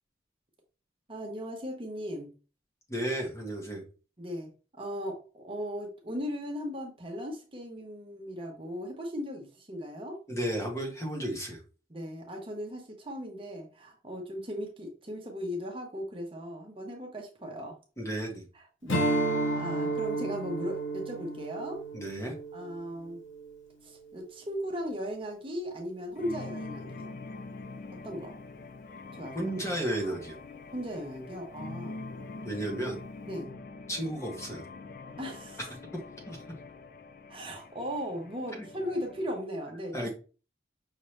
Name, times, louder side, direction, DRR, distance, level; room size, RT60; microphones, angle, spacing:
voice 1, 1.1-2.3 4.2-4.5 4.8-10.2 11.9-17.8 18.5-21.8 22.5-23.2 23.8-27.1 27.9-28.3 29.1-29.5 30.7-32.0 33.3-33.6 35.2-35.6 37.3-40.1, equal, 25° right, 1 dB, 0.9 m, -37 dB
voice 2, 2.9-3.8 10.3-11.6 18.0-18.4 21.9-22.3 29.3-30.4 32.4-33.0 33.9-34.6 36.3-36.4 38.6-38.7 39.9-40.1, right 1 dB, 15° left, 0 dB, 1.1 m, -33 dB
Strum, 18.9-23.6, right 2 dB, 80° left, 1.0 m, -32 dB
sound 1, 26.2-39.4, left 3 dB, 45° left, 0.4 m, -44 dB
5.8 x 2.7 x 3.2 m, 0.35 s
head